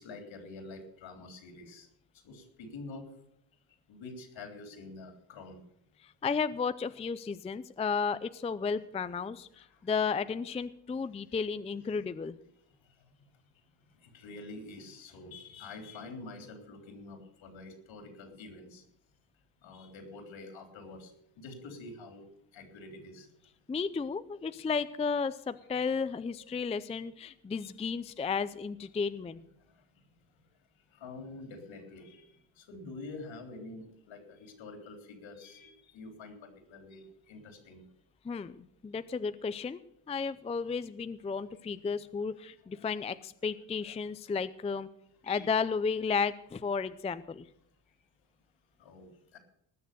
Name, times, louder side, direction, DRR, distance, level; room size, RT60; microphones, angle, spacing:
voice 1, 0.0-1.9 2.2-3.1 3.9-5.6 9.5-9.8 11.9-12.0 12.8-13.0 14.0-18.8 19.6-21.1 21.4-22.3 22.5-23.3 27.6-27.7 29.6-29.7 30.9-37.9 42.7-43.0 43.8-44.0 45.2-45.5 48.8-49.4, left 3 dB, 70° left, 5 dB, 3.7 m, -47 dB
voice 2, 6.2-9.5 9.9-12.3 23.7-29.4 38.3-38.5 38.8-39.8 40.1-43.1 43.4-44.9 45.3-47.4, left 5 dB, 15° left, 14 dB, 0.4 m, -33 dB
19.5 x 6.7 x 6.8 m, 0.75 s
cardioid pair, 115°, 48 cm